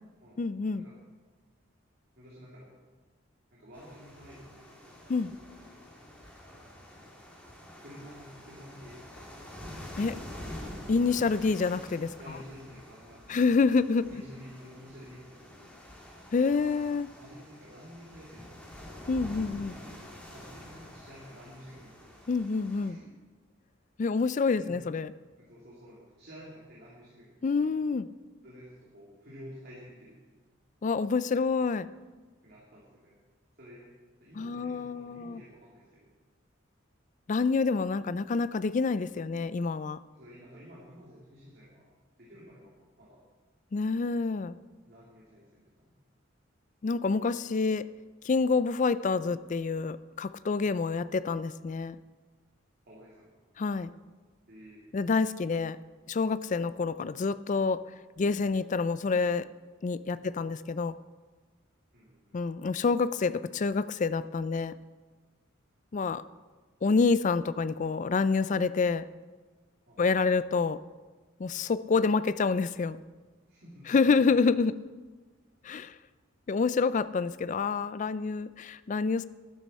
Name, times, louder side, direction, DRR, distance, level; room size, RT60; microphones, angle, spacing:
voice 1, 0.4-0.8 5.1-5.3 10.0-10.2 10.9-12.1 13.3-14.1 16.3-17.1 19.1-19.8 22.3-23.0 24.0-25.1 27.4-28.1 30.8-31.9 34.4-35.4 37.3-40.0 43.7-44.5 46.8-47.8 48.2-52.0 53.6-53.9 54.9-55.8 56.1-57.8 58.2-59.5 59.8-61.0 62.3-64.7 65.9-66.2 66.8-69.0 70.0-70.8 71.4-73.0 73.9-74.8 75.6-75.9 76.5-79.2, left 4 dB, 40° left, 16 dB, 0.4 m, -27 dB
voice 2, 2.1-2.8 3.5-5.2 6.9-7.1 7.8-9.1 12.2-13.5 14.1-15.7 17.2-18.7 20.2-22.1 22.8-23.1 24.1-24.3 24.5-24.8 25.4-27.8 28.4-30.4 32.4-33.2 33.6-33.9 34.2-36.1 40.1-41.9 42.2-43.2 44.9-45.9 50.5-50.7 52.9-53.4 54.5-54.8 56.4-56.5 60.2-60.3 61.9-62.4 69.9-70.0 73.5-74.0, equal, 50° right, -6 dB, 2.6 m, -51 dB
sound 1, 3.7-22.9, left 1 dB, 5° left, 2.0 m, -47 dB
12.5 x 11.5 x 4.3 m, 1.4 s
head